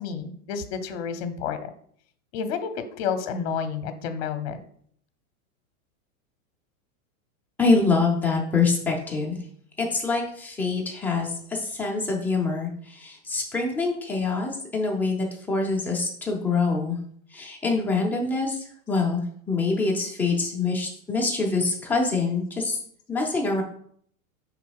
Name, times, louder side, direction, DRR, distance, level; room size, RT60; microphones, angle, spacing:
voice 1, 0.0-1.6 2.3-4.6, left 6 dB, 50° left, 9 dB, 0.8 m, -30 dB
voice 2, 7.6-9.4 9.8-17.0 17.3-19.2 19.5-22.8 23.1-23.6, left 3 dB, 5° left, -2 dB, 0.6 m, -25 dB
5.5 x 3.9 x 4.7 m, 0.62 s
supercardioid pair, 160°, 42 cm